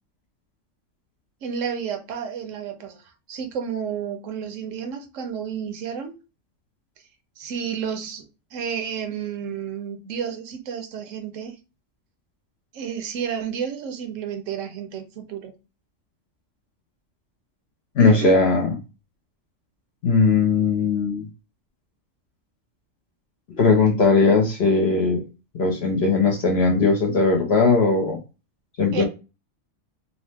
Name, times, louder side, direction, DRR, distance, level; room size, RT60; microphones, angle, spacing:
voice 1, 1.4-6.1 7.4-11.6 12.7-15.5 18.0-18.4 28.9-29.0, right 7 dB, 80° right, 1.0 m, -31 dB
voice 2, 18.0-18.8 20.0-21.2 23.6-25.2 25.5-28.2 28.8-29.0, left 4 dB, 65° left, 0.8 m, -19 dB
2.7 x 2.0 x 3.1 m
omnidirectional pair, 1.3 m